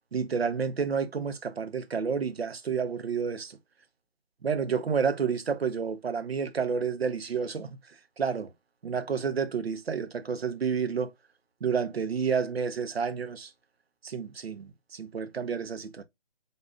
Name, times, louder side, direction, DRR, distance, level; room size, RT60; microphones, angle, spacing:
voice 1, 0.1-3.6 4.4-8.5 8.8-11.1 11.6-13.5 14.0-16.0, right 6 dB, 75° right, 0.8 m, -30 dB
4.0 x 2.6 x 3.5 m
hypercardioid pair, 180°, 31 cm